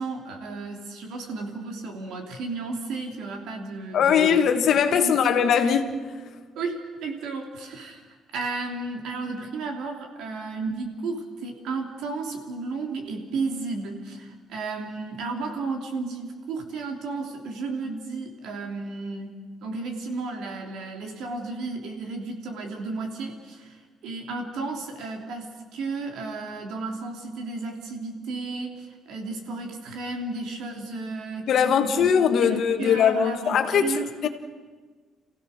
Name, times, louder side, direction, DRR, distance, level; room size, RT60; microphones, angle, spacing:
voice 1, 0.0-5.3 6.5-32.1 32.4-34.1, right 3 dB, 75° right, 3.2 m, -33 dB
voice 2, 3.9-6.0 31.5-33.9 34.2-34.3, left 7 dB, 55° left, 1.5 m, -21 dB
27.5 x 15.5 x 6.6 m
cardioid pair, 145°, 0 cm